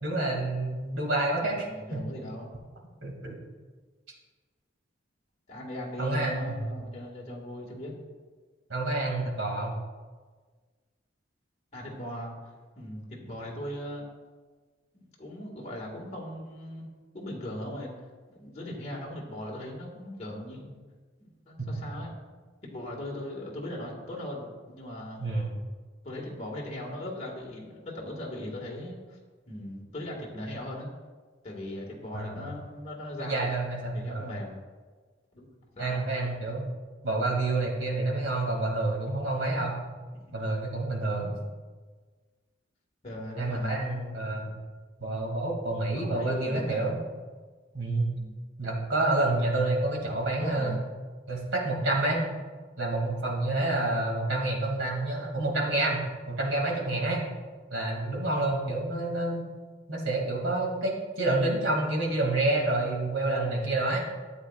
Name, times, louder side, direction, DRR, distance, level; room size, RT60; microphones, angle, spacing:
voice 1, 0.0-2.0 3.0-3.4 6.0-6.6 8.7-9.8 25.2-25.5 32.1-32.5 33.2-34.3 35.8-36.7 37.0-39.8 40.3-41.3 43.4-44.5 45.0-47.0 47.7-48.1 48.6-50.7 51.3-52.2 52.8-57.2 57.7-59.4 59.9-64.0, right 2 dB, 85° right, -1 dB, 2.5 m, -28 dB
voice 2, 1.4-2.5 5.5-7.9 11.7-12.3 12.8-14.1 14.9-16.9 17.1-17.9 18.3-20.8 21.2-22.1 22.6-25.2 26.0-29.2 29.5-30.9 31.4-33.5 33.9-34.6 35.3-35.5 35.8-36.1 40.1-40.2 41.2-41.3 43.0-43.8 45.9-47.0 48.1-48.4 50.4-50.8, left 1 dB, 35° left, -3 dB, 1.8 m, -39 dB
13.0 x 8.4 x 2.4 m, 1.4 s
head